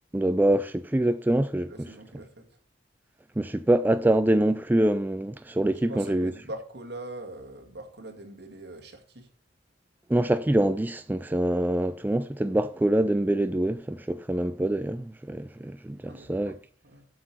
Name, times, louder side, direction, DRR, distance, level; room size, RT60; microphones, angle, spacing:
voice 1, 0.1-1.7 3.4-6.3 10.1-16.5, right 1 dB, 10° right, 0.3 m, -25 dB
voice 2, 1.6-2.6 5.9-9.3 16.1-17.1, right 1 dB, 65° right, 2.0 m, -42 dB
7.8 x 6.7 x 5.8 m
head